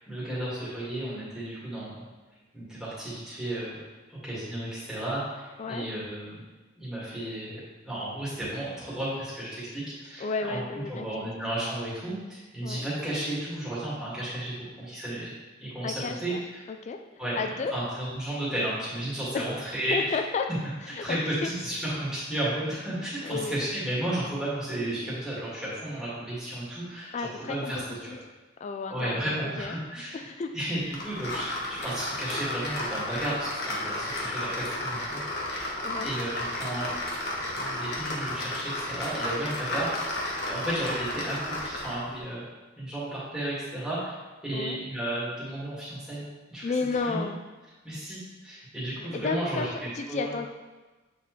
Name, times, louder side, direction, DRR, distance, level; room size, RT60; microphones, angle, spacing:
voice 1, 0.0-2.0 2.5-3.8 4.1-6.4 6.8-15.3 15.6-16.6 17.2-20.2 20.9-28.0 28.9-30.2 30.5-35.8 36.0-36.9 37.5-42.5 42.8-46.7 47.0-47.3 47.8-49.7 50.1-50.3, right 1 dB, 5° right, -10 dB, 2.0 m, -33 dB
voice 2, 10.2-11.3 12.6-12.9 15.8-16.4 16.7-17.0 17.4-17.8 19.3-19.4 19.9-20.5 20.8-21.2 21.4-21.5 23.2-23.6 27.1-28.2 28.6-29.8 30.1-30.6 35.8-36.1 44.5-44.8 46.6-47.4 49.0-50.5, left 4 dB, 35° left, 6 dB, 0.3 m, -32 dB
sound 1, 30.9-42.0, left 1 dB, 55° left, 1.1 m, -33 dB
7.9 x 4.0 x 3.1 m, 1.2 s
head